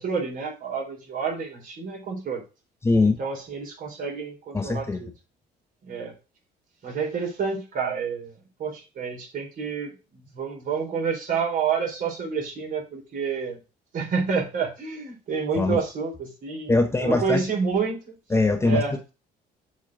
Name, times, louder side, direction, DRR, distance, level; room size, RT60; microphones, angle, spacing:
voice 1, 0.0-2.4 3.2-5.1 5.8-6.1 6.8-8.3 8.6-9.9 10.3-13.6 13.9-18.1 18.7-18.9, right 5 dB, 55° right, 1 dB, 4.1 m, -29 dB
voice 2, 2.8-3.2 4.5-5.0 15.6-15.8 16.7-17.4 18.3-18.8, left 3 dB, 15° left, 5 dB, 1.2 m, -21 dB
7.2 x 4.4 x 6.1 m, 0.30 s
cardioid pair, 110°, 17 cm